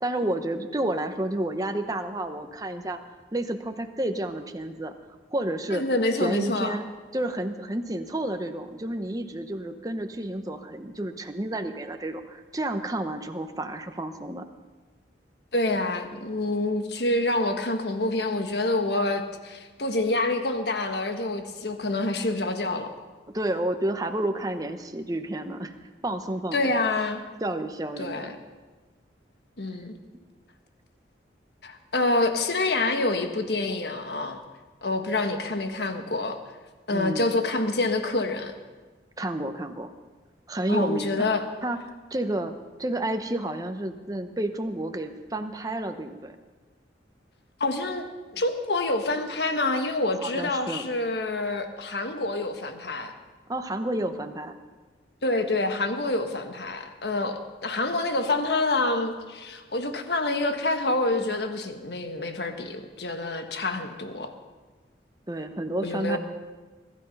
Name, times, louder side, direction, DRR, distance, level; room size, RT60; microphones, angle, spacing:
voice 1, 0.0-3.0 3.3-4.9 5.3-5.8 6.2-6.9 7.1-14.5 23.3-25.7 26.0-26.8 27.4-28.3 36.9-37.3 39.2-39.9 40.5-41.3 41.6-41.8 42.1-42.5 42.8-46.4 50.2-50.9 53.5-54.5 65.3-66.2, right 1 dB, 20° right, 7 dB, 0.9 m, -30 dB
voice 2, 5.7-6.8 15.5-22.9 26.5-27.2 28.0-28.3 29.6-29.9 31.6-34.4 34.8-36.4 36.9-38.5 40.7-41.4 47.6-48.1 48.3-53.1 55.2-64.3 65.8-66.2, left 2 dB, 65° left, 6 dB, 1.5 m, -27 dB
22.0 x 12.0 x 5.4 m, 1.3 s
head